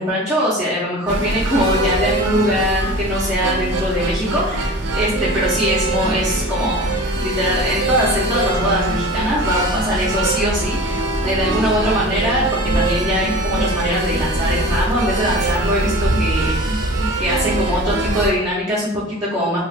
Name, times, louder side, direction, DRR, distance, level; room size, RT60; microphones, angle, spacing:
voice 1, 0.0-6.9 7.1-16.8 17.2-19.6, equal, 15° right, -9 dB, 0.6 m, -21 dB
sound 1, 1.1-18.3, right 2 dB, 70° right, 0.5 m, -22 dB
2.4 x 2.4 x 3.2 m, 0.78 s
head